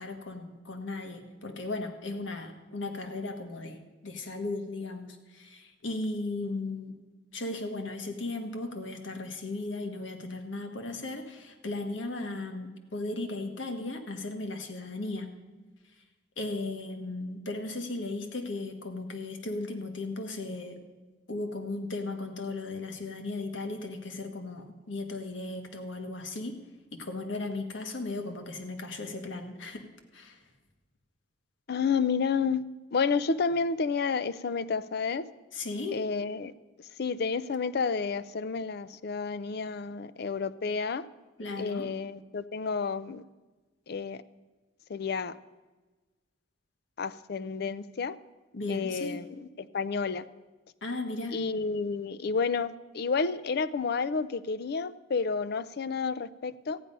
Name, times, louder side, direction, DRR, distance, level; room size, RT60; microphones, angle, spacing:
voice 1, 0.0-7.0 7.3-15.3 16.4-20.8 21.3-26.6 26.9-29.9 30.1-30.4 35.5-36.0 41.4-41.9 48.5-49.2 50.8-51.4, left 2 dB, 85° left, 5 dB, 1.5 m, -36 dB
voice 2, 31.7-32.6 32.9-35.3 35.9-36.5 37.0-41.0 41.6-43.2 43.9-44.2 44.9-45.4 47.0-48.2 48.7-49.3 49.6-50.2 51.3-56.8, left 5 dB, 60° left, 16 dB, 0.5 m, -30 dB
14.0 x 9.9 x 5.4 m, 1.2 s
head